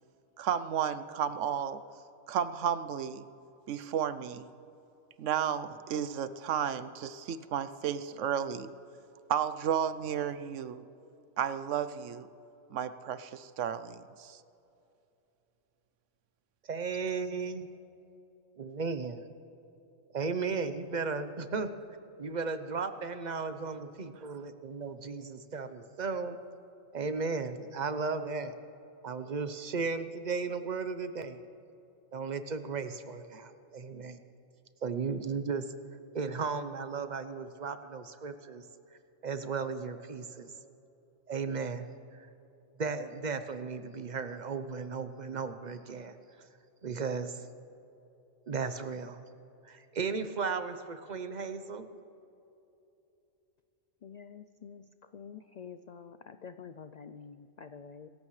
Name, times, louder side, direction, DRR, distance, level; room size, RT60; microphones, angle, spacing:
voice 1, 0.4-1.8 2.3-3.2 3.7-4.5 5.2-8.7 9.3-10.8 11.4-12.3 12.7-14.4, right 8 dB, 75° right, 13 dB, 1.0 m, -33 dB
voice 2, 16.7-17.7 18.6-19.3 20.1-21.7 22.2-26.4 26.9-28.5 29.0-31.4 32.1-34.2 34.8-35.7 36.1-38.6 39.2-40.5 41.3-41.9 42.8-46.1 46.8-47.5 48.5-49.2 49.7-51.9, right 4 dB, 40° right, 10 dB, 0.8 m, -35 dB
voice 3, 54.0-54.8 55.1-58.1, left 6 dB, 80° left, 10 dB, 0.3 m, -47 dB
26.0 x 14.5 x 3.2 m, 2.9 s
omnidirectional pair, 1.3 m